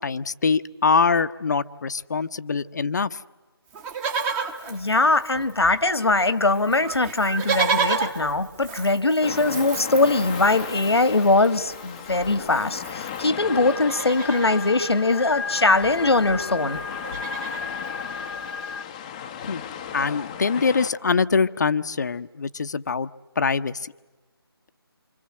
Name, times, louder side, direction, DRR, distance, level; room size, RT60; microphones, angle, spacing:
voice 1, 0.0-3.2 19.4-19.6 19.9-23.1 23.4-23.9, left 5 dB, 45° left, 1.0 m, -23 dB
Livestock farm animals working animals, 3.7-5.7 6.0-6.1 6.3-13.3 13.7-14.6 15.8-15.9 16.1-16.4 16.7-17.7 18.3-18.4, right 5 dB, 10° right, 1.2 m, -31 dB
voice 2, 4.7-16.8, left 2 dB, 85° left, 2.0 m, -21 dB
sound 1, 9.2-20.9, left 8 dB, 15° left, 0.9 m, -36 dB
sound 2, 13.4-18.8, left 4 dB, 70° left, 1.0 m, -34 dB
28.0 x 26.0 x 7.7 m
figure-of-eight pair, 165°, 13 cm